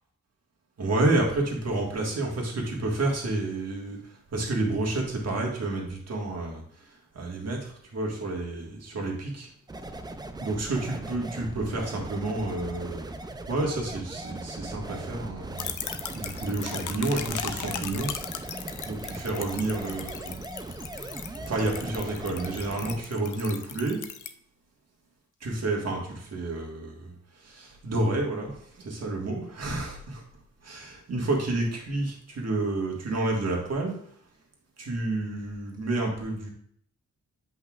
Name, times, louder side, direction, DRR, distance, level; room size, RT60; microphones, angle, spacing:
voice 1, 0.8-4.0 4.3-6.6 7.1-9.5 10.4-13.1 13.5-15.7 16.1-18.1 18.8-20.4 21.3-24.0 25.4-27.1 27.4-30.2 30.6-33.9 34.8-36.5, right 2 dB, 60° right, 0 dB, 1.6 m, -30 dB
sound 1, 9.7-23.0, right 2 dB, 15° right, 0.3 m, -39 dB
sound 2, 15.6-24.3, left 8 dB, 85° left, 0.6 m, -38 dB
8.1 x 5.4 x 2.4 m, 0.64 s
wide cardioid pair, 145°, 30 cm